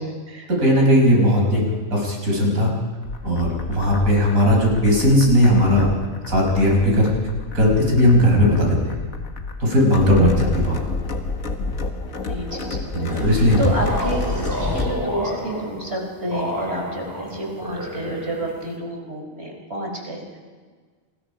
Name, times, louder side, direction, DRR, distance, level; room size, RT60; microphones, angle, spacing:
voice 1, 0.5-1.6 1.9-2.7 3.2-5.9 6.3-7.1 7.5-8.8 9.6-10.8 12.9-13.6, equal, 90° right, -1 dB, 6.2 m, -17 dB
sound 1, 3.0-15.0, left 3 dB, 80° left, 2.1 m, -30 dB
voice 2, 12.3-14.2 14.7-20.4, right 1 dB, 50° right, 0 dB, 4.8 m, -29 dB
sound 2, 13.1-18.7, equal, 15° right, 5.1 m, -30 dB
28.0 x 20.5 x 5.1 m, 1.5 s
omnidirectional pair, 1.4 m